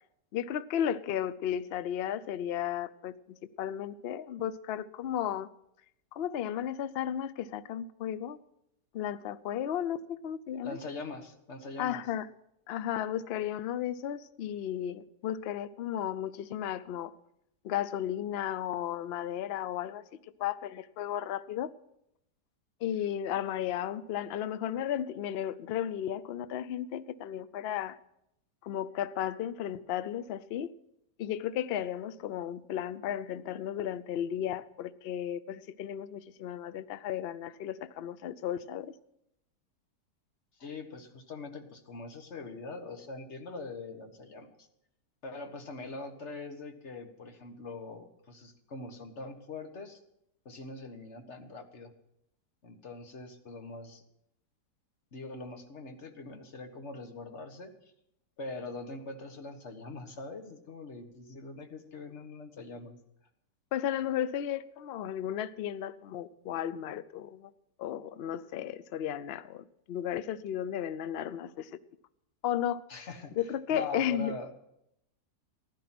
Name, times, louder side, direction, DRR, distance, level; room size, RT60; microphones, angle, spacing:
voice 1, 0.3-5.5 6.1-8.4 8.9-10.8 11.8-12.3 12.7-17.1 17.6-20.0 20.4-21.7 22.8-28.0 28.6-30.7 31.2-38.9 63.7-67.5 67.8-71.7 72.4-72.8 73.4-74.3, left 10 dB, 70° left, 0.5 m, -34 dB
voice 2, 10.6-12.0 40.6-44.5 45.2-50.0 50.4-51.9 52.6-54.0 55.1-57.7 58.4-63.0 72.9-74.5, left 3 dB, 45° left, 1.7 m, -43 dB
15.5 x 11.5 x 6.0 m
omnidirectional pair, 1.8 m